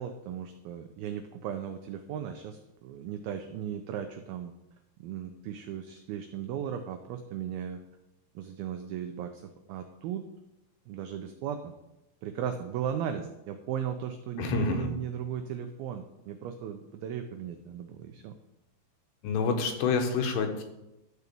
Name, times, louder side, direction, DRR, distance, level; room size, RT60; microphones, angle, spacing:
voice 1, 0.0-4.5 5.0-7.8 8.4-10.3 10.9-11.7 12.2-18.4, right 9 dB, 85° right, 7 dB, 2.1 m, -36 dB
voice 2, 14.4-14.9 19.2-20.6, left 4 dB, 80° left, 4 dB, 3.4 m, -28 dB
12.5 x 4.7 x 6.8 m, 0.92 s
omnidirectional pair, 5.0 m